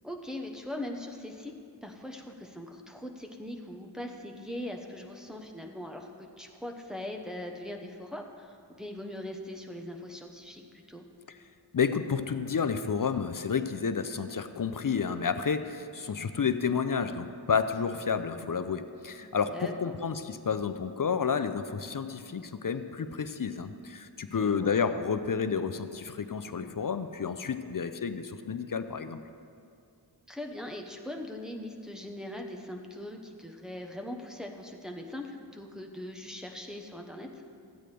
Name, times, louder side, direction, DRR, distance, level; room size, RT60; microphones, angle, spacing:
voice 1, 0.0-1.5 1.8-11.0 19.0-20.0 24.4-24.7 30.3-37.3, left 1 dB, ahead, 1 dB, 1.0 m, -41 dB
voice 2, 11.7-29.2, left 6 dB, 50° left, 10 dB, 0.5 m, -30 dB
14.0 x 9.0 x 3.4 m, 2.5 s
wide cardioid pair, 45°, 45 cm